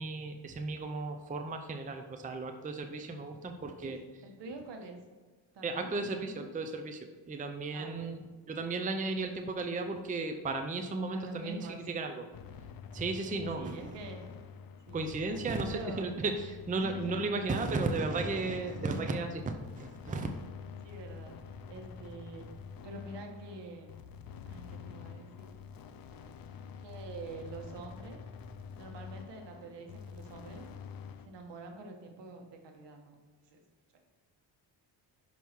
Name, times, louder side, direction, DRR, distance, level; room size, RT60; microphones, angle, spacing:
voice 1, 0.0-4.0 5.6-8.2 8.5-12.2 12.9-13.9 14.9-20.3, right 3 dB, 20° right, 5 dB, 0.6 m, -35 dB
voice 2, 4.2-5.0 5.5-6.5 7.7-8.3 11.1-11.8 13.3-14.2 14.9-15.1 15.7-16.1 16.7-17.5 20.8-21.4 21.7-22.5 22.8-23.9 24.5-25.5 26.8-28.2 28.8-30.7 31.2-33.1 33.5-33.6, right 2 dB, 70° right, 3 dB, 1.4 m, -46 dB
sound 1, 12.3-31.3, left 6 dB, 50° left, 0.6 m, -47 dB
6.0 x 5.4 x 4.5 m, 1.4 s
cardioid pair, 105°, 44 cm